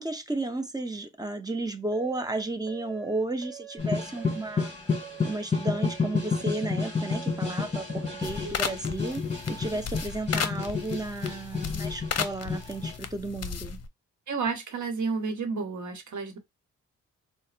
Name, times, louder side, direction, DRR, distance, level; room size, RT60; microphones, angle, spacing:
voice 1, 0.0-4.7 5.2-9.2 9.5-13.8, right 2 dB, 10° right, 0.7 m, -33 dB
sound 1, 1.9-8.5, right 13 dB, 40° right, 1.3 m, -46 dB
sound 2, 3.8-13.0, left 4 dB, 20° left, 1.9 m, -30 dB
sound 3, 8.2-13.9, left 7 dB, 55° left, 0.6 m, -35 dB
voice 2, 8.4-8.8 14.3-16.4, right 4 dB, 65° right, 1.0 m, -31 dB
4.0 x 2.1 x 2.5 m
cardioid pair, 65°, 31 cm